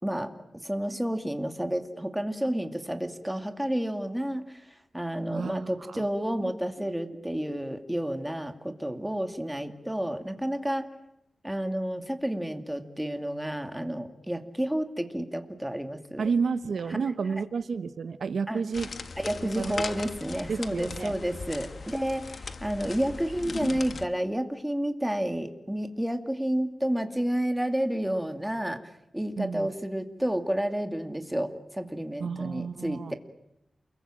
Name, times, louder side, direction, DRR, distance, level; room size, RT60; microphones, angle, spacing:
voice 1, 0.0-4.6 4.9-10.9 11.4-16.2 18.5-18.6 19.2-28.8 29.1-33.2, right 1 dB, 5° right, 7 dB, 2.4 m, -30 dB
voice 2, 5.3-6.5 6.8-6.9 7.3-7.4 16.2-18.9 19.6-19.7 20.5-21.1 29.4-29.7 32.2-33.1, right 5 dB, 80° right, 12 dB, 1.2 m, -31 dB
sound 1, 18.7-24.1, left 4 dB, 60° left, 1.7 m, -38 dB
29.0 x 22.0 x 8.9 m, 0.81 s
wide cardioid pair, 105°, 0 cm